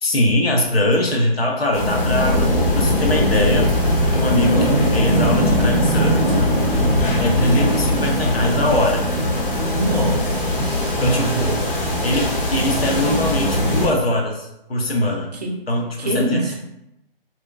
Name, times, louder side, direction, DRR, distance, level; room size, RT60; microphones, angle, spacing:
voice 1, 0.0-2.5 2.7-6.2 7.2-9.1 11.0-15.3 15.7-16.5, left 1 dB, 80° left, 0 dB, 0.8 m, -22 dB
sound 1, 1.7-13.9, left 1 dB, 60° left, 1.2 m, -20 dB
sound 2, 3.4-11.1, left 1 dB, 25° left, 0.5 m, -35 dB
voice 2, 4.5-4.8 9.7-11.5 15.4-15.5 16.0-16.5, right 2 dB, 45° right, 1 dB, 0.5 m, -24 dB
2.9 x 2.5 x 2.3 m, 0.86 s
figure-of-eight pair, 145°, 30 cm